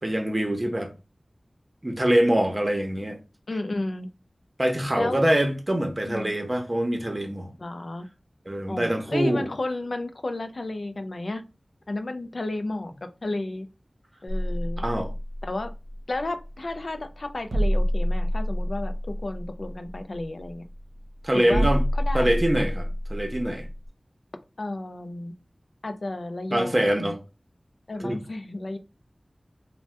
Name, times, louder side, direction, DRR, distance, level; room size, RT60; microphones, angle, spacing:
voice 1, 0.0-0.9 1.8-3.2 4.6-7.5 8.5-9.5 14.8-15.1 21.2-21.8 22.1-23.7 26.5-27.2 28.0-28.2, right 1 dB, 35° right, 0.7 m, -24 dB
voice 2, 3.5-4.1 5.0-5.2 6.1-6.3 7.6-8.1 8.7-11.4 11.9-13.7 14.2-14.8 15.4-15.7 16.1-20.7 21.3-21.7 21.9-22.3 24.6-25.3 25.8-27.2 27.9-28.8, left 2 dB, 75° left, 0.3 m, -32 dB
sound 1, 14.3-23.9, equal, 70° right, 0.7 m, -28 dB
2.7 x 2.1 x 3.2 m
wide cardioid pair, 55°, 0 cm